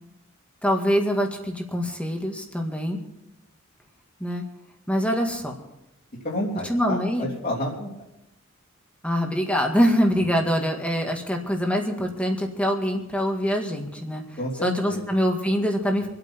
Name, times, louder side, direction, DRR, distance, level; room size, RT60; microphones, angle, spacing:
voice 1, 0.6-3.0 4.2-4.4 4.9-5.5 6.7-7.3 9.0-14.2 14.6-16.1, equal, 5° left, 2 dB, 1.9 m, -24 dB
voice 2, 6.2-7.9 14.4-15.1, left 1 dB, 45° left, -5 dB, 3.5 m, -30 dB
26.5 x 8.9 x 4.5 m, 0.89 s
head